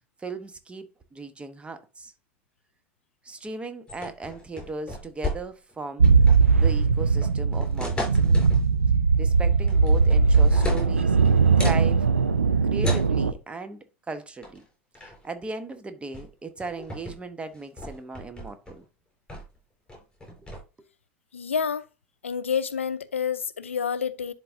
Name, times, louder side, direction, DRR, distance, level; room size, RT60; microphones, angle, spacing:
voice 1, 0.2-2.1 3.2-6.1 6.6-8.5 9.2-11.2 11.6-12.1 12.6-14.6 15.0-18.8 20.8-20.9, right 3 dB, 15° right, 1.1 m, -37 dB
sound 1, 3.9-5.7 6.0-6.6 7.2-8.6 9.7-10.0 10.3-11.9 12.8-13.1 14.4-14.6 14.9-15.3 16.1-16.3 16.6-17.2 17.5-18.8 19.3-19.6 19.9-20.6, left 1 dB, 10° left, 4.4 m, -34 dB
sound 2, 6.0-13.3, right 4 dB, 85° right, 0.5 m, -20 dB
voice 2, 21.3-21.8 22.2-24.3, left 7 dB, 85° left, 0.5 m, -28 dB
11.0 x 3.8 x 2.6 m
figure-of-eight pair, 75°, 7 cm